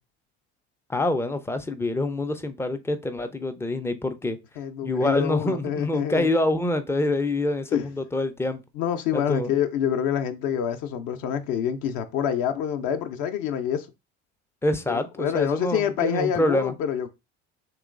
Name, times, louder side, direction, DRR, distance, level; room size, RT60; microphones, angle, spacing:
voice 1, 0.9-4.4 4.8-8.6 9.1-9.5 14.6-16.7, left 1 dB, 10° left, 0.3 m, -26 dB
voice 2, 4.6-6.3 7.7-7.9 8.8-13.9 14.9-17.1, left 9 dB, 55° left, 0.5 m, -27 dB
3.0 x 3.0 x 2.4 m
hypercardioid pair, 75°, 36 cm